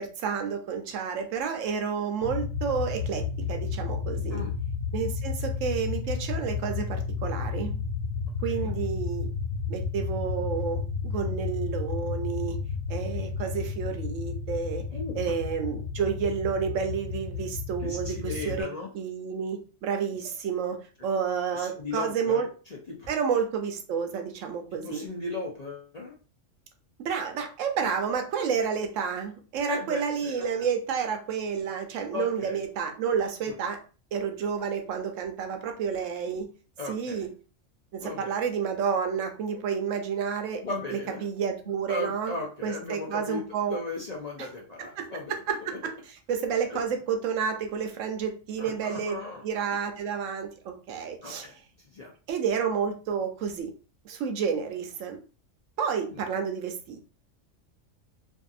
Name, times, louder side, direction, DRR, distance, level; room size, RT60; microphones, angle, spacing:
voice 1, 0.0-4.4 4.9-7.7 8.4-9.3 9.7-12.6 12.9-14.8 15.1-18.7 18.9-20.8 21.0-22.5 23.1-25.0 27.0-33.8 34.1-36.5 36.9-37.3 37.9-40.6 40.9-42.3 42.6-43.8 44.8-45.1 45.5-45.9 46.3-49.2 49.4-51.5 52.3-53.7 54.0-55.2 55.8-57.0, right 6 dB, 80° right, 5 dB, 0.9 m, -30 dB
sound 1, 2.2-18.6, left 5 dB, 80° left, 1.2 m, -32 dB
voice 2, 14.9-15.2 17.8-18.9 20.1-20.2 21.5-23.1 24.7-26.1 27.8-27.9 29.7-30.7 32.1-32.6 33.5-33.6 36.8-37.3 38.0-38.4 40.6-41.3 41.9-45.4 45.7-45.8 46.7-46.8 48.6-49.4 51.2-51.5 51.8-52.1 56.1-56.2, left 3 dB, 45° left, -3 dB, 0.5 m, -37 dB
2.6 x 2.6 x 2.4 m, 0.37 s
omnidirectional pair, 1.3 m